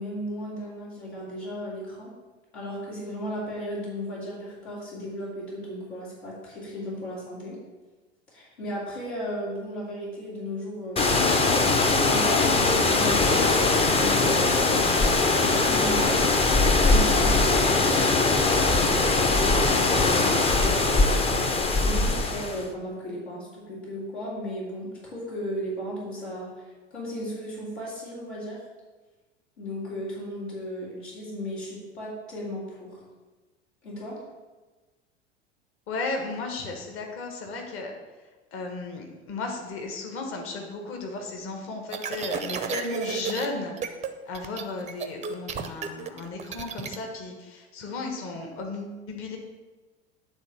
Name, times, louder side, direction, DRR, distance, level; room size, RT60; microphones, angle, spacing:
voice 1, 0.0-2.1 2.5-7.6 8.3-15.0 15.3-16.4 16.8-19.5 19.8-21.5 21.8-28.6 29.6-33.0 33.8-34.2, equal, 70° left, -7 dB, 2.8 m, -35 dB
sound 1, 11.0-22.6, left 3 dB, 15° left, 0.7 m, -21 dB
voice 2, 35.9-37.9 38.5-43.7 44.2-49.4, left 3 dB, 40° left, 2 dB, 1.5 m, -34 dB
sound 2, 41.9-43.5 43.8-44.1 44.3-47.0, right 7 dB, 20° right, 0.6 m, -32 dB
9.7 x 3.8 x 5.8 m, 1.2 s
figure-of-eight pair, 75°, 33 cm